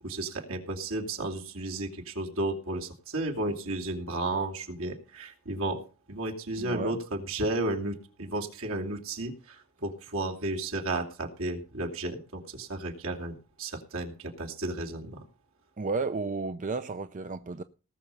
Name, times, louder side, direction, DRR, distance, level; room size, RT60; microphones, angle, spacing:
voice 1, 0.0-5.8 6.1-15.2, right 2 dB, 70° right, 2.7 m, -33 dB
voice 2, 6.6-7.0 15.8-17.6, right 4 dB, 35° right, 0.5 m, -32 dB
18.5 x 6.9 x 5.4 m
head